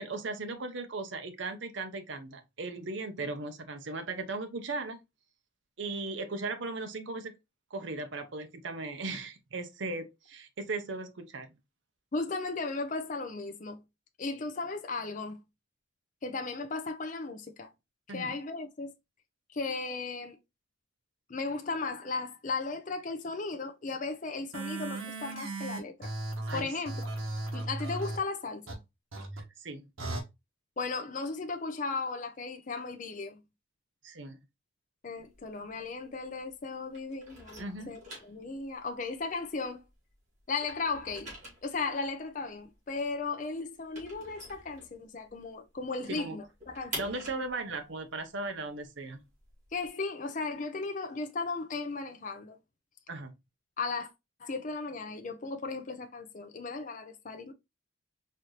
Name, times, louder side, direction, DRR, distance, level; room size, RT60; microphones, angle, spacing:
voice 1, 0.0-5.0 5.8-7.3 7.7-11.5 18.1-18.3 26.5-26.7 29.6-29.9 34.0-34.4 37.6-38.0 46.1-46.4 46.9-49.2 53.1-53.3, right 3 dB, 65° right, 0.7 m, -37 dB
voice 2, 12.1-13.8 14.2-15.4 16.2-17.7 18.1-18.9 19.5-20.4 21.3-26.1 26.5-27.1 27.5-28.8 30.8-33.4 35.0-39.8 40.5-41.3 41.6-47.1 49.7-52.6 53.8-54.1 54.4-57.5, left 3 dB, 40° left, 0.5 m, -36 dB
sound 1, 24.5-28.2 28.7-28.8 29.1-29.4 30.0-30.2, right 2 dB, 85° right, 1.1 m, -36 dB
sound 2, 35.2-36.6 36.9-40.1 40.4-45.4 45.7-45.8 46.1-49.9, right 1 dB, 35° right, 2.2 m, -46 dB
4.2 x 2.6 x 3.0 m
head